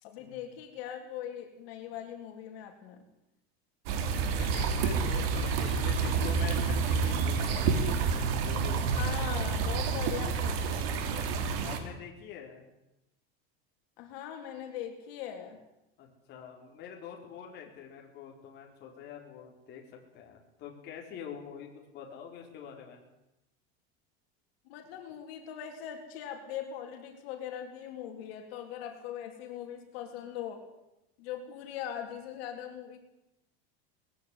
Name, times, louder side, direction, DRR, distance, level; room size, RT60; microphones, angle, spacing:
voice 1, 0.0-3.1 8.9-11.3 14.0-15.6 24.7-30.6 31.2-33.0, left 9 dB, 65° left, 4 dB, 3.8 m, -41 dB
sound 1, 3.9-11.8, right 5 dB, 60° right, 3.5 m, -29 dB
voice 2, 4.4-9.2 11.6-12.6 16.0-23.0, left 8 dB, 30° left, 0 dB, 4.1 m, -45 dB
20.0 x 16.0 x 9.8 m, 0.91 s
supercardioid pair, 170°, 33 cm